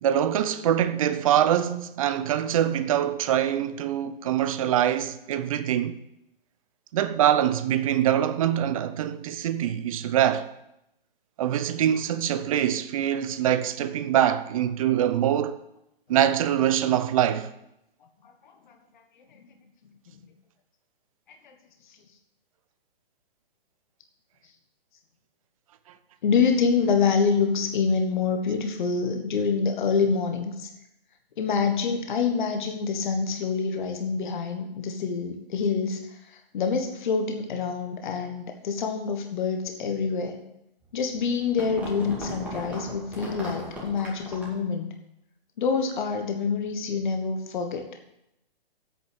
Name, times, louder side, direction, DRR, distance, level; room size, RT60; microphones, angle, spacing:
voice 1, 0.0-6.0 6.9-10.5 11.4-15.6 16.1-17.5, right 10 dB, 35° right, 0.6 m, -24 dB
voice 2, 26.2-30.7 31.4-36.0 36.3-40.4 40.9-44.9 45.6-47.9, left 5 dB, 50° left, 1.4 m, -26 dB
sound 1, 40.9-44.7, right 1 dB, 5° right, 2.2 m, -38 dB
8.6 x 6.7 x 7.9 m
figure-of-eight pair, 130°, 30 cm